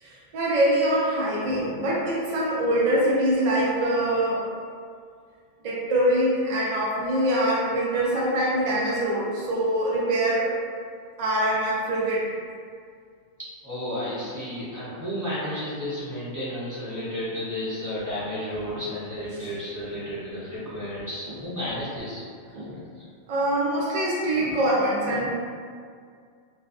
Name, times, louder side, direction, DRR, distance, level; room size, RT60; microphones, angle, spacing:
voice 1, 0.0-4.5 5.6-10.5 11.2-12.3 22.5-22.8 23.3-25.3, right 1 dB, 85° right, -5 dB, 0.3 m, -24 dB
voice 2, 13.6-22.2 23.0-23.1, left 1 dB, 25° right, -12 dB, 0.4 m, -32 dB
2.5 x 2.3 x 2.3 m, 2.1 s
omnidirectional pair, 1.3 m